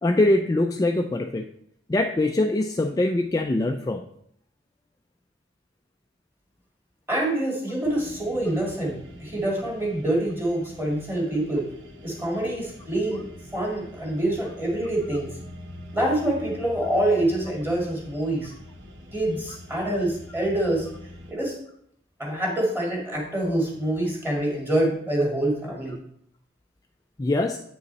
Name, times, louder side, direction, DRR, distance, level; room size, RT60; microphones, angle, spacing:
voice 1, 0.0-1.5 1.9-4.0 27.2-27.6, left 2 dB, 20° left, 4 dB, 0.3 m, -23 dB
voice 2, 7.1-11.7 12.0-15.4 15.9-18.5 19.1-20.9 21.3-21.6 22.2-26.0, right 1 dB, 10° right, -2 dB, 2.1 m, -26 dB
sound 1, 7.8-21.3, equal, 80° right, 1.1 m, -44 dB
8.5 x 5.3 x 4.1 m, 0.70 s
head